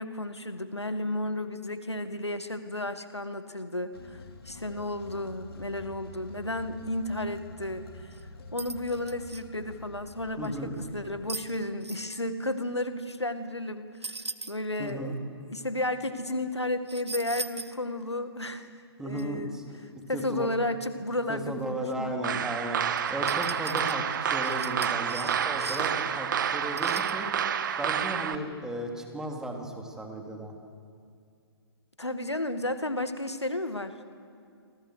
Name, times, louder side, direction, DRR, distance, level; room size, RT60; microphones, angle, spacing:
voice 1, 0.0-4.2 4.5-8.1 8.5-14.1 14.5-15.1 15.5-18.7 19.0-19.6 20.1-22.2 32.0-34.1, left 1 dB, 90° left, 10 dB, 2.1 m, -33 dB
sound 1, 3.9-11.3, left 1 dB, 60° left, 3.1 m, -47 dB
sound 2, 8.1-8.2 8.6-9.4 10.4-10.5 11.3-12.0 14.0-14.9 16.9-17.8 18.1-18.2 19.2-19.3 23.0-26.1 26.8-27.2, right 3 dB, 85° right, 1.2 m, -39 dB
voice 2, 10.4-10.7 14.8-15.2 19.0-19.7 20.1-20.5 21.3-22.8 23.1-27.3 27.8-30.5, right 1 dB, 5° right, 2 dB, 3.1 m, -35 dB
sound 3, 22.2-28.3, right 8 dB, 45° right, 1.5 m, -29 dB
27.0 x 26.5 x 6.6 m, 2.3 s
figure-of-eight pair, 130°, 14 cm